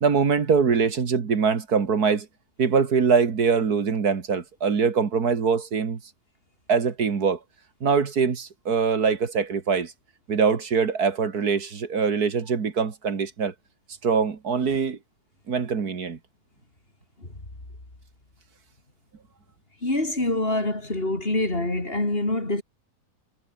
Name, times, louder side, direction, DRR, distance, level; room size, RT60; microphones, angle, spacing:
voice 1, 0.0-2.3 2.6-6.0 6.7-7.4 7.8-9.9 10.3-13.5 14.0-15.0 15.5-16.2, right 5 dB, 70° right, 2.5 m, -23 dB
voice 2, 19.8-22.6, left 2 dB, 35° left, 4.8 m, -25 dB
omnidirectional pair, 1.7 m